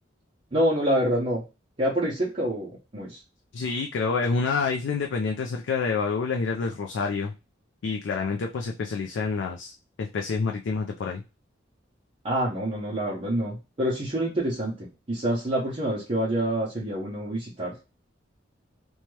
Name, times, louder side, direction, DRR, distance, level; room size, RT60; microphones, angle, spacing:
voice 1, 0.5-1.4 1.8-3.2 12.2-14.7 15.1-17.7, right 1 dB, 30° right, -6 dB, 0.7 m, -26 dB
voice 2, 3.5-7.3 7.8-11.2, left 4 dB, 70° left, 2 dB, 0.4 m, -28 dB
2.8 x 2.2 x 3.1 m, 0.28 s
head